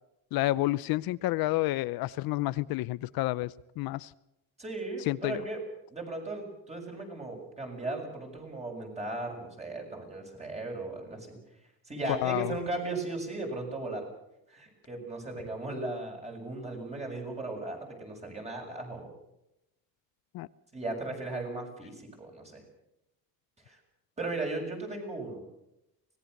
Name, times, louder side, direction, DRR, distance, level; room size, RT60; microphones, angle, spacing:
voice 1, 0.3-4.1 5.1-5.4 12.1-12.5 20.3-20.5, left 17 dB, 75° left, 17 dB, 0.7 m, -30 dB
voice 2, 4.6-5.6 5.9-11.4 11.9-14.1 14.5-19.1 20.7-22.6 23.6-23.8 24.2-25.4, right 2 dB, 20° right, 1 dB, 7.0 m, -37 dB
25.0 x 20.0 x 6.6 m, 0.87 s
cardioid pair, 150°, 36 cm